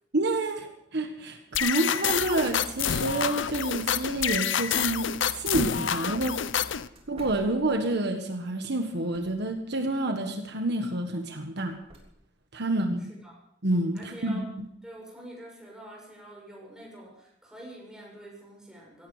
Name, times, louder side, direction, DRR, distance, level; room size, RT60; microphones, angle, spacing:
voice 1, 0.1-6.4 7.1-11.7 12.5-13.1 13.6-14.4, right 2 dB, 60° right, 5 dB, 1.5 m, -28 dB
sound 1, 1.5-6.9, left 8 dB, 75° left, 0.7 m, -28 dB
sound 2, 6.9-8.2 8.8-9.6 11.6-12.0, right 1 dB, 30° right, 3.5 m, -51 dB
voice 2, 12.6-13.4 13.9-14.5 14.8-19.1, right 1 dB, 5° right, -2 dB, 6.7 m, -46 dB
17.0 x 16.0 x 5.0 m, 0.73 s
head